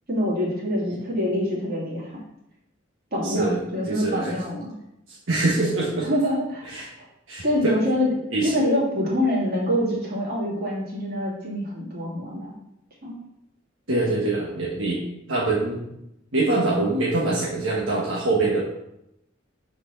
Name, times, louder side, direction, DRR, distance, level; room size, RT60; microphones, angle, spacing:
voice 1, 0.1-2.1 3.1-4.7 6.0-6.8 7.4-8.2 8.4-12.5 13.0-13.2, left 1 dB, 50° right, -5 dB, 2.8 m, -25 dB
voice 2, 3.2-4.3 5.1-6.1 6.6-6.9 7.3-7.7 8.3-8.5 13.9-15.0 15.3-15.8 16.3-18.6, right 2 dB, 75° right, -5 dB, 1.4 m, -24 dB
6.4 x 4.6 x 5.7 m, 0.84 s
head